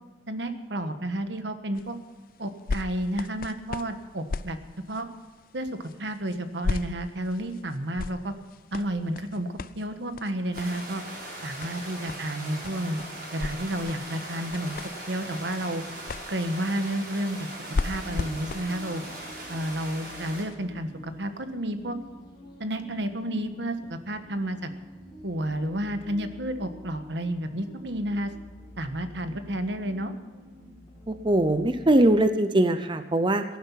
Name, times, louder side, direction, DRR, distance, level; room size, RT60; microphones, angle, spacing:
voice 1, 0.3-2.0 2.4-4.6 4.9-5.1 5.5-8.3 8.7-11.0 11.4-13.0 13.3-14.8 15.1-15.8 16.3-17.5 17.8-19.0 19.5-22.0 22.6-24.7 25.2-28.3 28.8-30.1, right 1 dB, 80° right, 8 dB, 1.4 m, -31 dB
sound 1, 1.7-20.5 21.2-21.3, left 3 dB, 50° left, 0.5 m, -38 dB
sound 2, 10.5-20.4, right 1 dB, 55° right, 6.5 m, -40 dB
sound 3, 17.5-32.3, equal, 25° left, 4.0 m, -48 dB
voice 2, 31.1-33.4, right 1 dB, 25° right, 10 dB, 0.7 m, -21 dB
17.0 x 11.0 x 5.8 m, 1.3 s
head